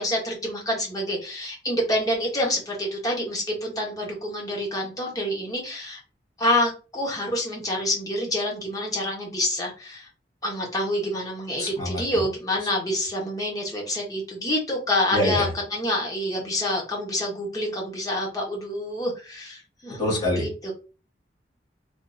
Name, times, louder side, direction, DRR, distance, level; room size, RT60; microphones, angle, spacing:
voice 1, 0.0-6.0 6.4-10.1 10.4-20.7, left 1 dB, 20° left, -1 dB, 1.1 m, -27 dB
voice 2, 11.6-12.0 15.1-15.5 20.0-20.4, left 1 dB, 35° left, -4 dB, 1.8 m, -25 dB
3.5 x 2.6 x 2.6 m, 0.34 s
head